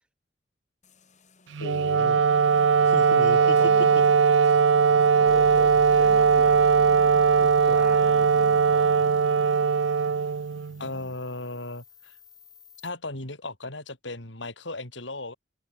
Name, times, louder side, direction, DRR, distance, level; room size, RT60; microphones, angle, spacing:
sound 1, 0.8-6.7, left 2 dB, 40° left, 6.7 m, -57 dB
Wind instrument woodwind instrument, 1.5-10.8, right 6 dB, 70° right, 0.5 m, -20 dB
voice 1, 1.6-2.2 2.9-3.6 10.8-12.1 12.8-15.3, left 2 dB, 70° left, 5.1 m, -36 dB
voice 2, 2.7-4.2 4.8-9.1 10.7-11.2, equal, 5° right, 7.1 m, -45 dB
sound 2, 5.2-12.9, left 1 dB, 20° left, 5.6 m, -49 dB
head